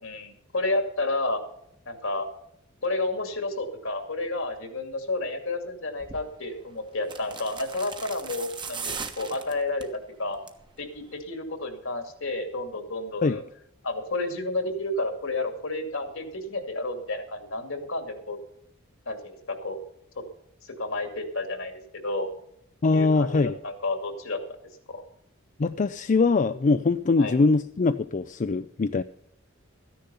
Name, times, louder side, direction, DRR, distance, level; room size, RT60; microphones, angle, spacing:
voice 1, 0.0-1.4 1.9-2.3 2.8-9.9 10.2-10.4 10.8-13.4 13.8-18.4 19.1-19.8 20.8-22.3 22.9-24.4 24.9-25.0 27.2-27.3, left 2 dB, 70° left, 7 dB, 2.5 m, -31 dB
sound 1, 6.0-6.3 7.0-10.0 10.3-10.7 11.0-11.1, right 5 dB, 25° right, 1.3 m, -38 dB
voice 2, 22.8-23.6 25.6-29.0, left 3 dB, 40° left, 11 dB, 0.4 m, -22 dB
14.0 x 10.5 x 5.6 m, 0.74 s
head